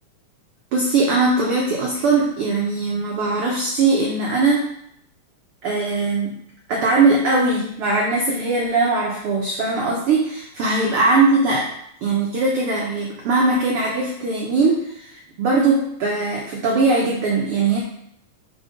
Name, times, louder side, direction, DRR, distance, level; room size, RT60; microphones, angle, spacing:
voice 1, 0.7-4.6 5.6-6.4 6.7-11.7 12.0-17.8, right 3 dB, 75° right, -2 dB, 1.3 m, -20 dB
5.3 x 4.4 x 5.1 m, 0.72 s
omnidirectional pair, 3.8 m